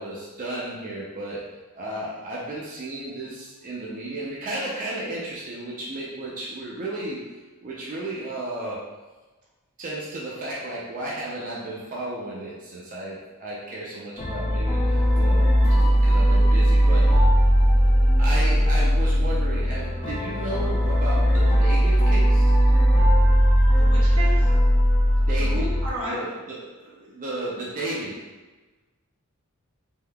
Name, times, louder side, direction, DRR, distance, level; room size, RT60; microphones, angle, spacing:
voice 1, 0.0-1.4 1.7-7.2 7.6-8.8 9.8-17.2 18.2-22.5 25.3-25.7 26.0-28.2, right 1 dB, 40° right, -6 dB, 0.5 m, -33 dB
sound 1, 14.2-25.9, equal, 25° left, 0.5 m, -19 dB
voice 2, 23.8-24.5 25.4-26.1, equal, 80° right, -5 dB, 1.0 m, -33 dB
3.5 x 2.7 x 2.2 m, 1.2 s
head